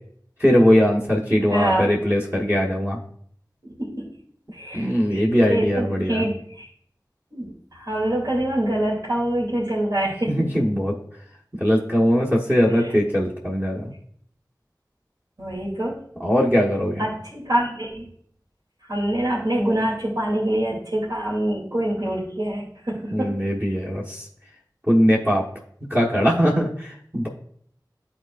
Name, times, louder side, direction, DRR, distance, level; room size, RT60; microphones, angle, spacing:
voice 1, 0.4-3.0 4.7-6.3 10.3-10.9 11.6-13.9 16.2-17.0 23.1-24.3 24.9-25.4 25.9-27.3, equal, 25° right, -5 dB, 1.3 m, -20 dB
voice 2, 1.5-1.9 3.6-4.0 4.5-6.7 7.3-7.5 7.7-10.3 12.8-12.9 15.4-15.9 17.0-18.0 18.9-23.3, right 1 dB, 60° right, -5 dB, 2.7 m, -25 dB
12.0 x 4.2 x 2.5 m, 0.63 s
wide cardioid pair, 40°, 8 cm